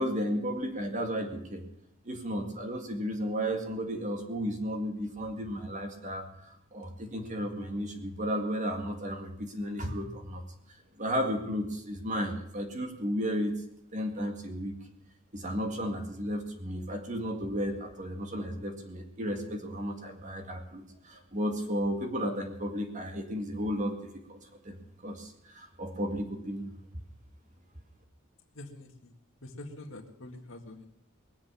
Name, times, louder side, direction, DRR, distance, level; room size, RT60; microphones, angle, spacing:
voice 1, 0.0-1.6 2.0-10.4 11.0-13.5 13.9-14.8 15.3-24.4 24.6-26.7, equal, 35° right, 4 dB, 2.0 m, -33 dB
voice 2, 28.5-29.1 29.4-30.9, left 1 dB, 70° left, 4 dB, 2.0 m, -45 dB
20.5 x 7.8 x 7.0 m, 0.75 s
head